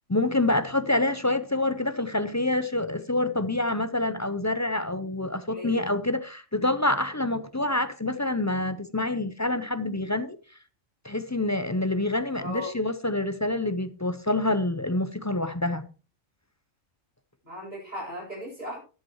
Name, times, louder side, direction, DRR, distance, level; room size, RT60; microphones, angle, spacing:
voice 1, 0.1-10.4 11.0-15.8, left 2 dB, 20° left, 0.4 m, -27 dB
voice 2, 5.5-5.8 12.4-12.8 17.4-18.8, equal, 35° right, 8.1 m, -37 dB
14.0 x 10.5 x 3.1 m
omnidirectional pair, 1.3 m